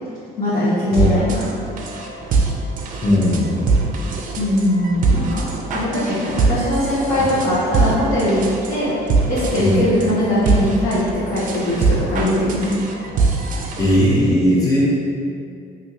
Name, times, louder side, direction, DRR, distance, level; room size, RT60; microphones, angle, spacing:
voice 1, 0.4-1.5 4.3-8.4 8.7-8.9 9.3-12.8, left 1 dB, 55° left, -13 dB, 1.1 m, -20 dB
sound 1, 1.0-14.0, right 4 dB, 50° right, 0.4 m, -22 dB
voice 2, 3.0-3.6 9.6-9.8 13.8-14.9, left 1 dB, 20° left, -7 dB, 0.8 m, -17 dB
3.4 x 2.7 x 2.8 m, 2.4 s
cardioid pair, 110°, 17 cm